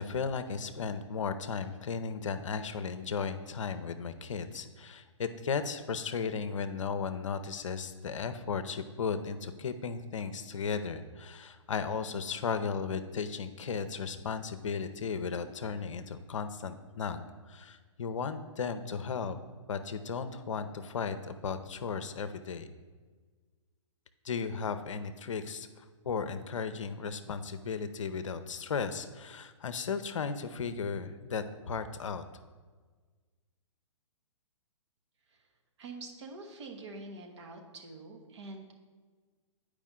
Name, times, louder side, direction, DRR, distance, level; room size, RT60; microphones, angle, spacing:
voice 1, 0.0-19.4 19.7-22.7 24.2-25.7 26.0-32.2, left 5 dB, 70° left, 10 dB, 0.6 m, -35 dB
voice 2, 35.8-38.7, right 3 dB, 55° right, 2 dB, 1.3 m, -46 dB
9.0 x 4.9 x 3.7 m, 1.4 s
hypercardioid pair, 125°, 17 cm